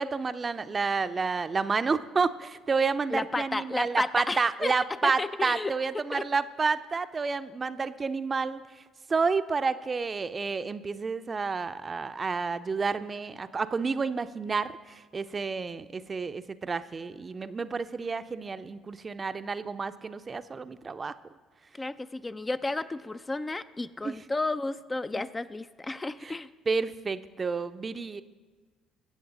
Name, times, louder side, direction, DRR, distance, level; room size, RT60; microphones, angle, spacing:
voice 1, 0.0-8.6 9.1-21.1 24.0-24.2 26.2-26.3 26.7-28.2, right 4 dB, 30° right, 12 dB, 0.5 m, -30 dB
voice 2, 3.1-4.7 5.0-5.7 6.1-6.3 21.8-26.5, left 2 dB, 20° left, 11 dB, 0.4 m, -32 dB
22.0 x 7.8 x 3.9 m, 1.4 s
figure-of-eight pair, 50°, 0 cm